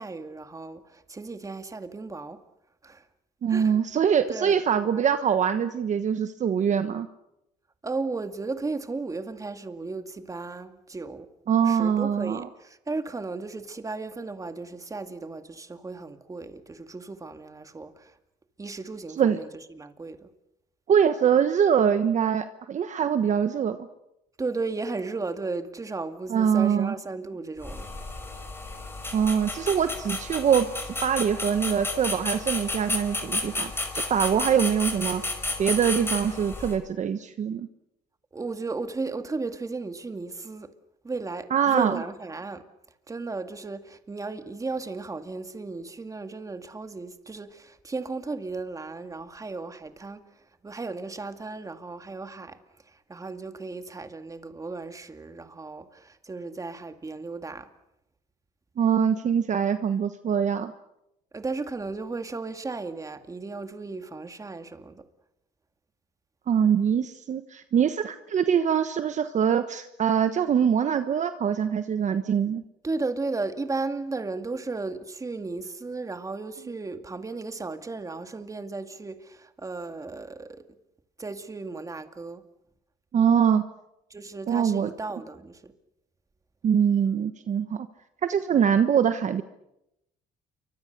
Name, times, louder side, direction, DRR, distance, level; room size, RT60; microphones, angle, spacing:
voice 1, 0.0-2.4 2.8-3.0 3.5-3.8 4.3-4.6 7.8-11.3 11.6-18.1 18.6-20.3 24.4-27.9 38.3-40.7 41.0-42.6 43.1-50.2 50.6-52.6 52.9-57.7 61.3-65.0 72.8-80.6 81.2-82.4 84.1-85.7, right 3 dB, 20° right, 2.1 m, -35 dB
voice 2, 3.4-7.1 11.5-12.5 19.2-19.4 20.9-23.8 26.3-26.9 29.1-35.2 35.6-37.7 41.5-42.0 58.8-60.7 66.5-72.6 83.1-83.6 84.5-84.9 86.6-87.9 88.2-89.4, right 8 dB, 45° right, 1.2 m, -23 dB
sound 1, 27.6-36.8, left 2 dB, 15° left, 5.0 m, -32 dB
29.0 x 24.5 x 6.7 m
cardioid pair, 110°, 17 cm